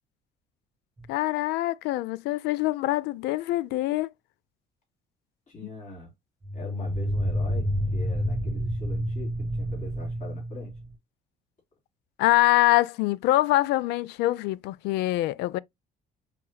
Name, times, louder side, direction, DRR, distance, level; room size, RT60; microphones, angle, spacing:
sound 1, 1.0-1.1 6.4-11.0, equal, 20° right, 1.0 m, -29 dB
voice 1, 1.1-4.1 12.2-15.6, left 17 dB, 85° left, 0.4 m, -24 dB
voice 2, 5.5-6.1 6.5-10.8, left 2 dB, 50° left, 3.4 m, -42 dB
4.7 x 4.5 x 2.2 m
cardioid pair, 110°, 17 cm